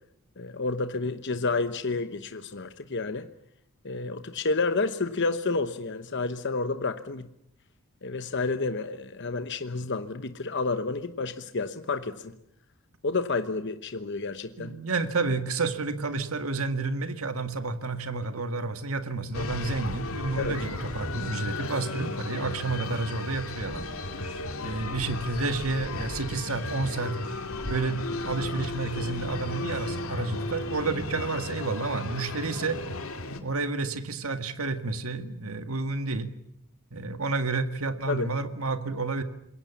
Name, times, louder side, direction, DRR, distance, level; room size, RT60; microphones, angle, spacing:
voice 1, 0.4-3.3 3.8-7.3 8.0-12.4 13.0-14.7 20.4-20.6 38.1-38.3, left 3 dB, 55° left, 10 dB, 1.0 m, -30 dB
voice 2, 14.6-23.9 24.6-27.2 27.6-32.8 33.4-36.3 36.9-39.2, right 3 dB, 80° right, 8 dB, 1.9 m, -30 dB
sound 1, 19.3-33.4, left 2 dB, 80° left, 2.5 m, -35 dB
27.0 x 22.0 x 7.2 m, 0.77 s
head